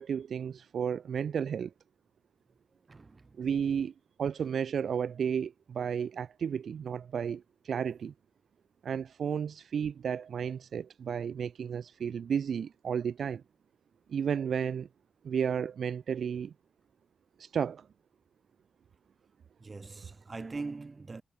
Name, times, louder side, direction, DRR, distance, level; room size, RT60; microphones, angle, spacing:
voice 1, 0.0-1.7 3.4-3.9 4.2-8.1 8.8-13.4 14.1-14.9 15.2-16.5 17.4-17.9, right 7 dB, 75° right, 0.8 m, -32 dB
voice 2, 2.7-3.4 19.6-21.2, right 3 dB, 30° right, 4.9 m, -42 dB
wide cardioid pair, 145°, 0 cm